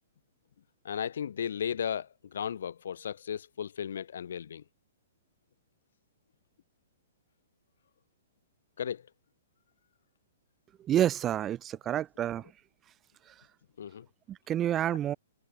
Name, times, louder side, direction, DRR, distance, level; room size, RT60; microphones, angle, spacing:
voice 1, 0.8-4.6 8.8-9.0 13.8-14.1, left 8 dB, 70° left, 0.5 m, -35 dB
voice 2, 10.8-12.5 13.3-13.4 14.3-15.2, right 11 dB, 15° right, 0.4 m, -29 dB
hypercardioid pair, 170°, 0 cm